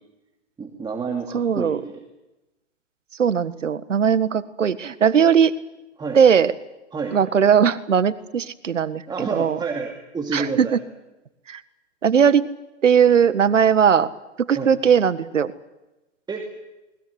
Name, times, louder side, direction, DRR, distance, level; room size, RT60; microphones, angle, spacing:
voice 1, 0.6-2.0 6.0-6.2 6.9-7.2 9.1-10.8 14.5-14.7 16.3-16.5, right 4 dB, 10° right, 2 dB, 2.6 m, -29 dB
voice 2, 1.3-1.8 3.2-5.5 6.2-6.5 7.1-9.6 10.3-10.8 11.5-11.6 12.0-12.4 12.8-14.1 14.5-15.5, right 7 dB, 85° right, 14 dB, 1.7 m, -18 dB
21.0 x 20.5 x 9.7 m, 1.0 s
hypercardioid pair, 125°, 36 cm